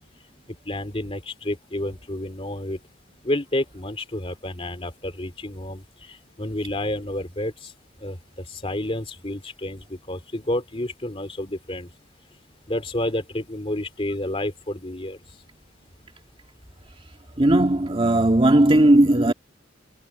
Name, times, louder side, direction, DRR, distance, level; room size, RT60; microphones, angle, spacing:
voice 1, 0.7-2.8 3.2-7.7 8.0-11.9 12.7-15.2, left 1 dB, 30° left, 2.8 m, -30 dB
voice 2, 17.4-19.3, right 1 dB, 30° right, 1.9 m, -17 dB
head